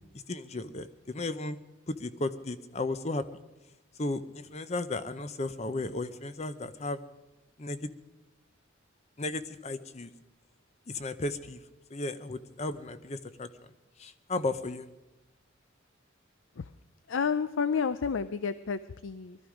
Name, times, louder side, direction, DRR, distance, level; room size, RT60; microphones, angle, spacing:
voice 1, 0.3-1.6 1.9-3.3 4.0-7.0 7.6-7.9 9.2-10.1 10.9-11.6 11.9-13.5 14.0-14.9, left 2 dB, 35° left, 13 dB, 0.7 m, -34 dB
voice 2, 17.1-19.4, left 6 dB, 75° left, 14 dB, 0.5 m, -30 dB
20.5 x 13.0 x 5.1 m, 1.0 s
head